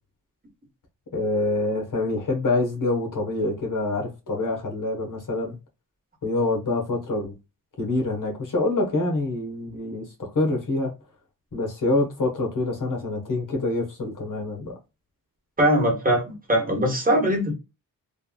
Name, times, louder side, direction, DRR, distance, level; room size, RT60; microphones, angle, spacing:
voice 1, 1.1-5.6 6.2-7.3 7.8-10.9 11.5-14.7, left 2 dB, 60° left, 1.2 m, -26 dB
voice 2, 15.6-17.5, equal, 25° right, 1.1 m, -21 dB
3.4 x 2.2 x 2.3 m
wide cardioid pair, 115°, 36 cm